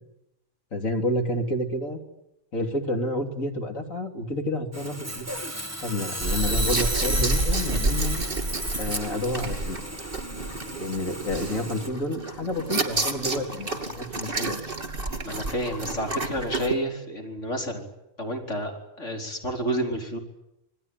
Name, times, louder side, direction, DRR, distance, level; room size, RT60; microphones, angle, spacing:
voice 1, 0.7-2.0 2.5-5.3 5.8-8.2 8.8-9.8 10.8-14.6, left 1 dB, 80° left, 4 dB, 3.7 m, -29 dB
Sawing, 4.7-11.9, right 1 dB, 10° right, 1.8 m, -33 dB
sound 1, 6.2-16.7, right 2 dB, 40° right, 2.9 m, -29 dB
voice 2, 15.2-17.9 18.2-20.2, equal, 65° left, 3 dB, 4.9 m, -30 dB
27.0 x 20.5 x 9.3 m, 0.86 s
omnidirectional pair, 1.4 m